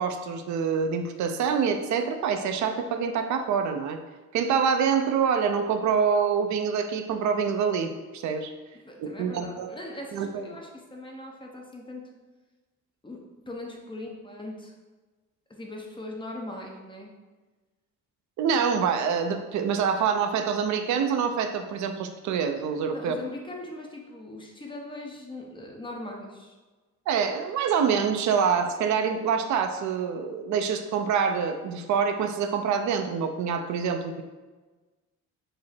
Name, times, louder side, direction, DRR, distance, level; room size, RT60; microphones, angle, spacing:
voice 1, 0.0-4.0 4.3-8.5 9.0-9.7 10.1-10.5 18.4-23.2 27.1-34.2, right 6 dB, 70° right, 7 dB, 0.5 m, -26 dB
voice 2, 8.8-12.0 13.0-14.7 15.5-17.1 22.9-26.6, left 1 dB, 15° left, 0 dB, 0.8 m, -40 dB
4.7 x 2.0 x 4.3 m, 1.3 s
cardioid pair, 90°, 30 cm